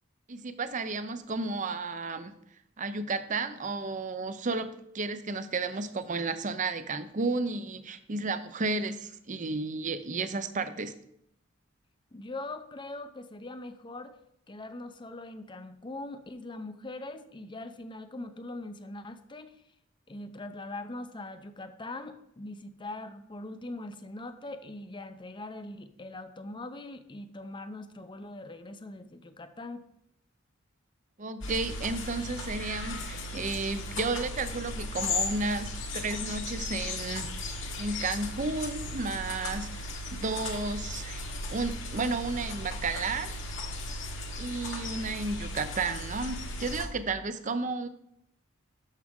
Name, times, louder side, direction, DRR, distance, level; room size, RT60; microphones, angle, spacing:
voice 1, 0.3-2.3 2.8-4.7 4.9-10.9 31.2-43.6 44.4-47.9, right 3 dB, 40° right, 11 dB, 0.6 m, -33 dB
voice 2, 12.1-14.2 14.5-19.6 20.1-29.8, left 2 dB, 25° left, 10 dB, 0.6 m, -41 dB
sound 1, 31.4-46.9, left 2 dB, 65° left, 1.4 m, -36 dB
12.0 x 6.0 x 3.7 m, 0.74 s
head